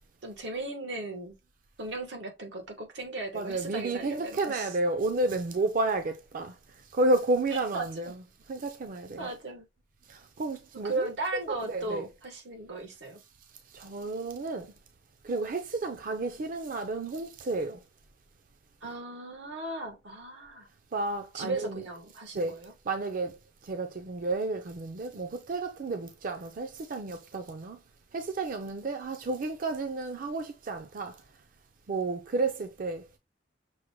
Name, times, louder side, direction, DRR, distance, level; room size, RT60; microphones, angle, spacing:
voice 1, 0.2-1.3 1.8-4.7 7.7-8.1 9.2-9.7 10.8-13.2 18.8-20.7 21.3-22.7, right 2 dB, 90° right, 1.2 m, -36 dB
voice 2, 3.3-6.5 6.9-8.2 8.5-9.3 10.1-12.1 13.7-14.7 15.2-17.8 20.9-21.8 22.3-22.6 22.9-23.4 23.6-27.8 28.1-31.2 31.9-33.0, right 2 dB, 50° right, 0.5 m, -31 dB
6.2 x 2.1 x 3.0 m
head